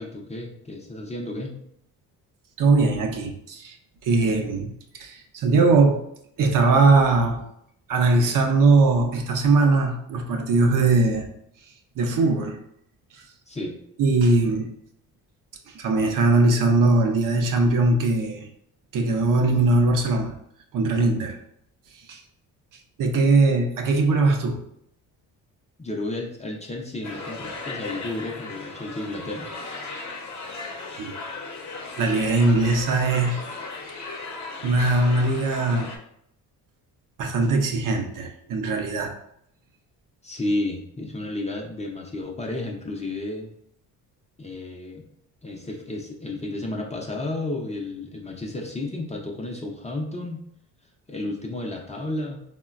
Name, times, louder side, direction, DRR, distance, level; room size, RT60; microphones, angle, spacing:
voice 1, 0.0-1.6 13.5-13.8 25.8-29.5 40.2-43.5 44.4-45.0 45.4-50.4 51.1-52.4, left 2 dB, 15° left, 0 dB, 0.5 m, -32 dB
voice 2, 2.6-3.8 4.0-4.7 4.9-6.0 6.4-7.4 7.9-11.3 12.0-12.6 14.0-14.7 15.7-18.5 18.9-20.3 20.7-21.4 22.1-22.2 23.0-24.6 31.0-31.1 32.0-33.4 34.6-35.9 37.2-39.1, right 3 dB, 50° right, 4 dB, 0.6 m, -20 dB
sound 1, 27.0-36.0, left 3 dB, 45° left, 0.8 m, -36 dB
3.6 x 2.1 x 2.4 m, 0.72 s
supercardioid pair, 65°, 40 cm